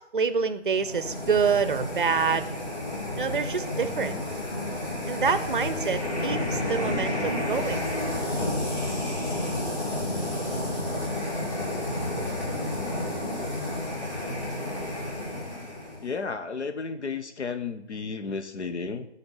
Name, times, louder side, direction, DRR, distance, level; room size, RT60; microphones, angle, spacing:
voice 1, 0.1-2.5 3.2-4.1 5.1-7.8, right 5 dB, 45° right, 12 dB, 0.6 m, -26 dB
sound 1, 0.7-16.1, left 1 dB, 25° left, 3.0 m, -31 dB
voice 2, 3.8-4.2 16.0-19.1, left 4 dB, 70° left, 8 dB, 0.8 m, -33 dB
7.0 x 4.3 x 6.8 m, 0.82 s
figure-of-eight pair, 160°, 35 cm